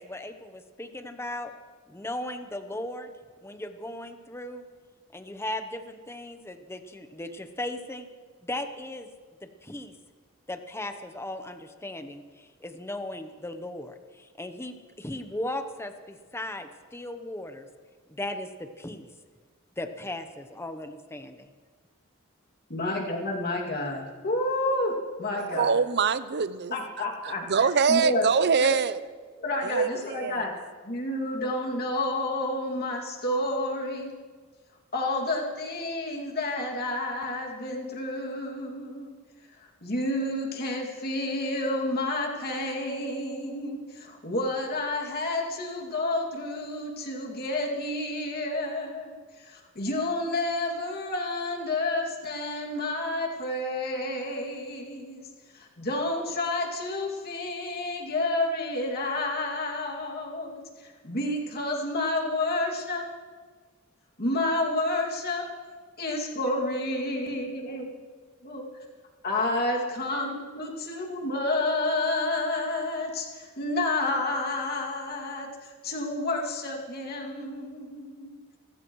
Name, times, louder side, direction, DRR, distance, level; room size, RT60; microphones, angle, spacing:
voice 1, 0.0-1.5 1.9-3.1 3.4-4.6 5.1-8.1 8.4-9.1 9.4-9.9 10.5-17.7 18.1-19.1 19.8-20.3 20.6-21.5, left 1 dB, 10° left, 8 dB, 0.9 m, -37 dB
voice 2, 22.7-25.8 26.7-28.2 28.6-28.7 29.4-30.5 30.8-34.1 34.9-39.1 39.8-55.3 55.5-63.0 64.2-65.4 66.0-67.8 68.4-68.7 69.2-78.4, left 2 dB, 50° left, -1 dB, 2.4 m, -30 dB
voice 3, 25.4-29.0 29.6-30.4, right 5 dB, 55° right, 14 dB, 0.6 m, -25 dB
26.0 x 14.5 x 3.1 m, 1.5 s
head